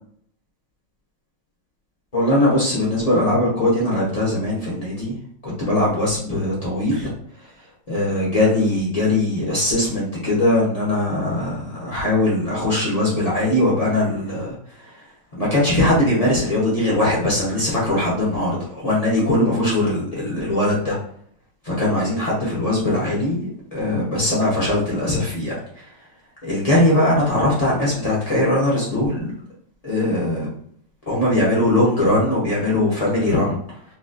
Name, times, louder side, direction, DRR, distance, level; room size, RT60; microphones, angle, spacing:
voice 1, 2.1-5.2 5.4-7.1 7.9-15.0 15.3-20.9 21.6-23.4 23.7-25.9 26.4-29.3 29.8-30.5 31.1-33.6, left 1 dB, 70° left, -6 dB, 0.3 m, -20 dB
3.9 x 2.5 x 2.2 m, 0.62 s
omnidirectional pair, 2.1 m